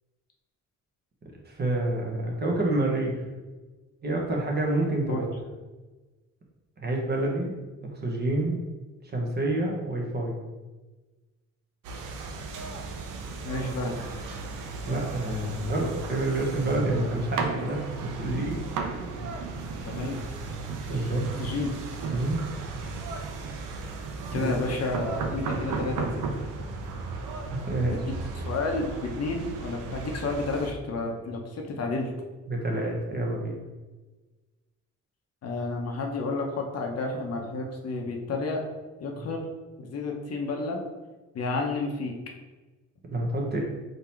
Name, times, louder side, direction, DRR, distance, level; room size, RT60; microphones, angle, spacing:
voice 1, 1.4-3.2 4.0-5.3 6.8-7.5 8.0-8.6 9.0-10.4 14.9-18.6 19.0-19.1 20.9-21.2 22.1-22.4 24.3-24.5 27.7-28.0 32.5-33.5 43.1-43.6, right 2 dB, 35° right, 0 dB, 1.0 m, -28 dB
sound 1, 11.8-30.7, right 3 dB, 85° right, 0.6 m, -35 dB
voice 2, 13.4-14.0 19.8-20.3 20.9-21.1 21.4-21.8 24.3-26.2 27.9-32.1 35.4-38.6 39.0-39.4 39.8-40.8 41.3-42.1, left 3 dB, 55° left, 2 dB, 0.8 m, -31 dB
3.9 x 2.8 x 4.3 m, 1.2 s
cardioid pair, 105°, 31 cm